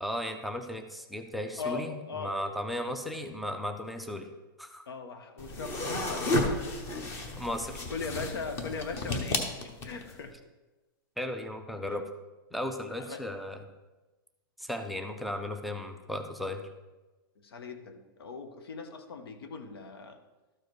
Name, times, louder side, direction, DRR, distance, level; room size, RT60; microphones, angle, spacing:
voice 1, 0.0-4.3 4.6-4.8 7.4-7.8 11.2-12.0 12.5-13.6 14.6-16.7, left 1 dB, ahead, 7 dB, 0.4 m, -35 dB
voice 2, 1.6-2.4 4.9-7.1 7.9-10.3 11.9-12.0 13.0-13.2 17.4-20.2, left 4 dB, 80° left, 8 dB, 1.2 m, -40 dB
sound 1, 5.4-10.2, left 2 dB, 20° left, 0.9 m, -32 dB
12.5 x 4.8 x 4.7 m, 1.1 s
hypercardioid pair, 165°, 13 cm